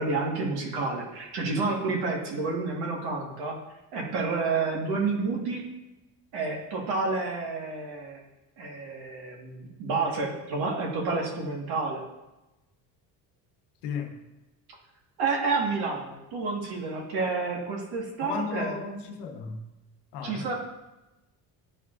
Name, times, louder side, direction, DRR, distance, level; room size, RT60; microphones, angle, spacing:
voice 1, 0.0-3.6 3.9-5.6 6.3-8.2 8.6-12.0 15.2-18.7 20.2-20.5, right 3 dB, 70° right, 0 dB, 1.7 m, -29 dB
voice 2, 18.2-19.7 20.1-20.5, left 5 dB, 80° left, 5 dB, 1.1 m, -34 dB
11.0 x 4.6 x 2.5 m, 0.99 s
cardioid pair, 120°, 40 cm